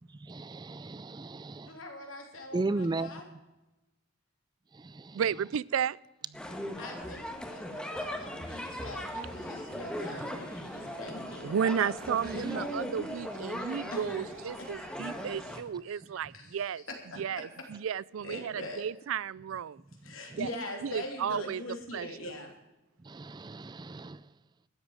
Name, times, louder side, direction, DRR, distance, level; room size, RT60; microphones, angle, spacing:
voice 1, 0.2-1.7 2.5-3.2 4.7-5.2 23.0-24.2, right 2 dB, 20° right, 0.4 m, -35 dB
voice 2, 1.7-3.2 6.8-11.5 12.5-12.7 13.9-14.1 14.6-14.7 15.9-16.0 16.3-16.6 16.9-17.4 18.2-18.9 20.0-22.5, left 2 dB, 90° left, 3.3 m, -43 dB
voice 3, 5.1-6.0 11.4-16.8 17.2-19.8 20.4-20.5 20.8-21.6 21.9-22.1, right 8 dB, 90° right, 0.4 m, -33 dB
sound 1, 6.3-15.6, equal, 5° left, 1.4 m, -38 dB
sound 2, 8.5-15.3, right 2 dB, 45° right, 3.1 m, -54 dB
13.0 x 8.1 x 8.9 m
head